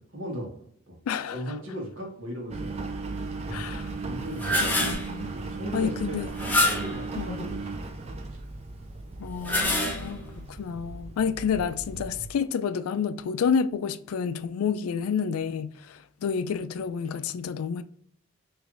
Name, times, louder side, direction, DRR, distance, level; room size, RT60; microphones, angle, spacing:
voice 1, 0.1-0.5 0.8-1.0 1.3-2.8 3.4-3.6 4.0-4.7 5.2-6.2 6.6-7.6 8.0-8.4, equal, 65° right, 1.5 m, -37 dB
voice 2, 1.1-1.4 3.5-3.9 4.6-5.3 5.7-6.3 7.2-7.5 9.2-17.8, left 6 dB, 80° left, 0.3 m, -29 dB
Engine, 2.5-12.3, right 3 dB, 30° right, 0.3 m, -36 dB
sound 1, 4.2-5.1 6.3-7.0 9.2-10.3, left 1 dB, 10° left, 0.7 m, -26 dB
4.8 x 3.1 x 2.5 m
head